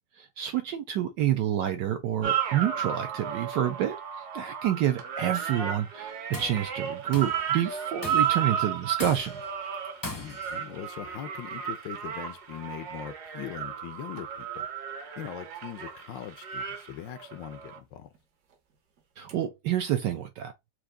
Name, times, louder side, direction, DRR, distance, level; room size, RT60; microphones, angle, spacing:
voice 1, 0.2-4.0 4.3-9.4 19.2-20.5, right 11 dB, 75° right, 1.0 m, -28 dB
sound 1, 2.2-17.8 19.3-19.4, right 8 dB, 60° right, 1.3 m, -33 dB
Tools, 6.1-6.6 7.1-7.5 8.0-8.5 9.0-9.5 10.0-10.6, left 2 dB, 25° left, 0.4 m, -39 dB
voice 2, 10.1-14.7 15.2-18.1, left 11 dB, 75° left, 1.2 m, -41 dB
4.6 x 2.5 x 3.7 m
omnidirectional pair, 2.3 m